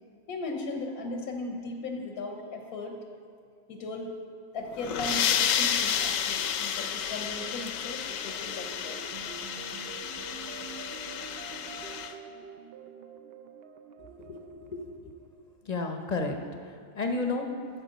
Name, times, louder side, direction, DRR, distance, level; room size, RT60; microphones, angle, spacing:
voice 1, 0.3-3.0 3.7-4.1 4.5-9.0, left 2 dB, 90° left, 2 dB, 1.4 m, -37 dB
sound 1, 4.6-12.1, left 8 dB, 70° left, 0.9 m, -31 dB
sound 2, 7.2-15.8, right 7 dB, 65° right, 0.6 m, -47 dB
voice 2, 14.2-15.1 15.7-16.4 16.7-17.5, left 3 dB, 40° left, 3 dB, 0.7 m, -32 dB
12.0 x 7.2 x 5.2 m, 2.2 s
omnidirectional pair, 1.5 m